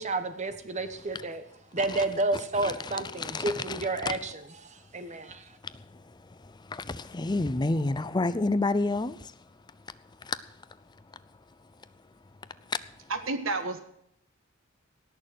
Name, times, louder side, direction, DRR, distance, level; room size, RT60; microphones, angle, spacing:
voice 1, 0.0-1.4 1.7-4.3 4.6-5.4, right 2 dB, 35° right, 1.1 m, -30 dB
voice 2, 2.3-4.2 4.9-12.1 12.4-13.1, left 2 dB, 20° left, 0.5 m, -33 dB
voice 3, 13.1-13.8, right 3 dB, 70° right, 1.6 m, -30 dB
17.5 x 6.7 x 7.6 m
head